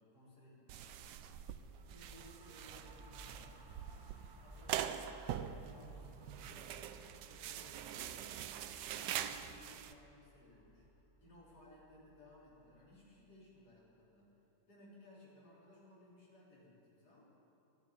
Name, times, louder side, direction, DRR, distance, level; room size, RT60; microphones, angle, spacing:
voice 1, 0.0-1.3 1.9-6.9 7.2-8.5 8.9-10.9 11.2-14.3 14.7-17.2, left 1 dB, 65° left, -6 dB, 4.5 m, -61 dB
sound 1, 0.7-9.9, right 10 dB, 80° right, 1.3 m, -44 dB
sound 2, 1.6-13.3, right 1 dB, 30° right, 0.4 m, -60 dB
12.5 x 11.0 x 9.8 m, 2.9 s
omnidirectional pair, 1.8 m